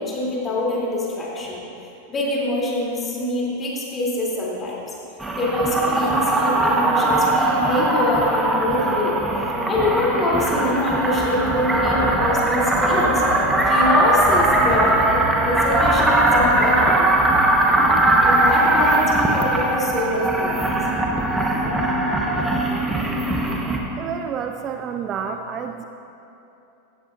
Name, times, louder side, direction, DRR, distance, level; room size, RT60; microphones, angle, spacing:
voice 1, 0.0-1.6 2.1-4.8 5.4-9.2 9.7-13.2 13.6-17.2 18.2-20.7, left 1 dB, 20° left, -4 dB, 3.3 m, -25 dB
sound 1, 5.2-23.8, right 1 dB, 10° right, 1.4 m, -20 dB
voice 2, 24.0-25.8, right 7 dB, 30° right, 6 dB, 0.5 m, -29 dB
17.0 x 14.5 x 2.7 m, 2.9 s
figure-of-eight pair, 90°, 0 cm